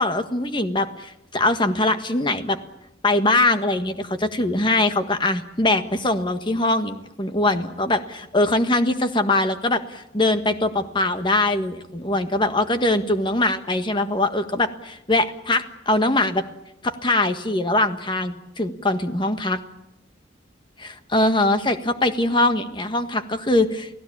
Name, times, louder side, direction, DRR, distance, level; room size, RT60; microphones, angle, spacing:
voice 1, 0.0-2.6 3.0-16.4 16.8-19.6 20.8-23.9, left 2 dB, 25° left, 8 dB, 1.6 m, -22 dB
29.5 x 17.5 x 8.8 m, 0.83 s
head